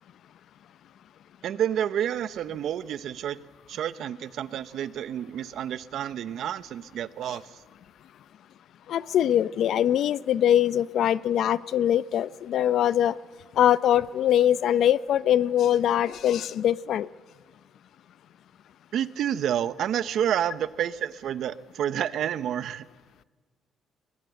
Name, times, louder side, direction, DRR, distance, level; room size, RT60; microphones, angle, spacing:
voice 1, 1.4-3.4 3.7-7.6 18.9-22.9, right 10 dB, 75° right, 15 dB, 0.7 m, -29 dB
voice 2, 8.9-13.2 13.5-17.1, left 11 dB, 75° left, 17 dB, 0.6 m, -22 dB
22.5 x 20.5 x 7.9 m, 1.5 s
cardioid pair, 90°, 0 cm